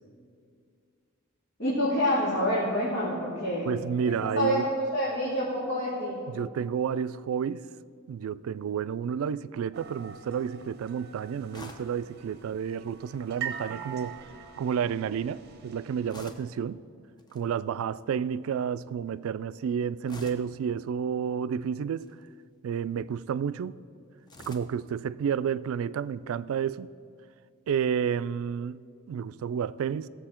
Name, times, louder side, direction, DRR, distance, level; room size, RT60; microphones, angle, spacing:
voice 1, 1.6-3.7 4.1-6.2, equal, 60° left, 2.7 m, -27 dB
voice 2, 3.7-4.7 6.3-7.6 8.1-14.2 14.6-16.8 17.3-22.1 22.6-23.7 24.5-26.9 27.7-28.8 29.1-30.1, right 7 dB, 70° right, 0.3 m, -30 dB
sound 1, 9.7-16.1, right 7 dB, 50° right, 0.8 m, -43 dB
sound 2, 11.5-12.0 13.7-14.0 16.1-16.6 17.2-17.4 20.0-20.6 21.9-22.3 24.3-24.8, left 2 dB, 20° left, 0.8 m, -46 dB
17.0 x 7.1 x 4.4 m
head